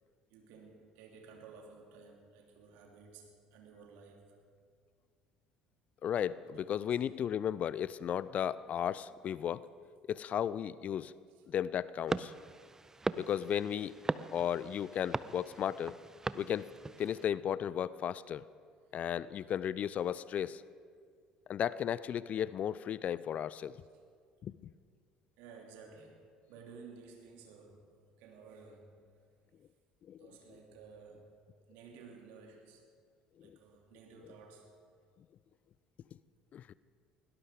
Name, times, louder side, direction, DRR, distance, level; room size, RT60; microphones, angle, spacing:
voice 1, 0.3-4.4 6.4-7.0 11.3-11.4 25.4-29.0 30.2-32.8 33.4-34.8, right 5 dB, 60° right, 1 dB, 2.8 m, -55 dB
voice 2, 6.0-9.7 10.1-11.1 11.5-12.3 13.2-13.9 14.3-16.0 16.3-16.7 17.0-18.4 18.9-20.6 21.5-23.8 24.4-24.7 30.1-30.2 33.4-33.6 36.5-36.7, left 9 dB, 45° left, 19 dB, 0.4 m, -35 dB
sound 1, 12.1-17.2, right 3 dB, 15° right, 0.5 m, -40 dB
21.0 x 17.5 x 3.7 m, 2.1 s
figure-of-eight pair, 60°, 3 cm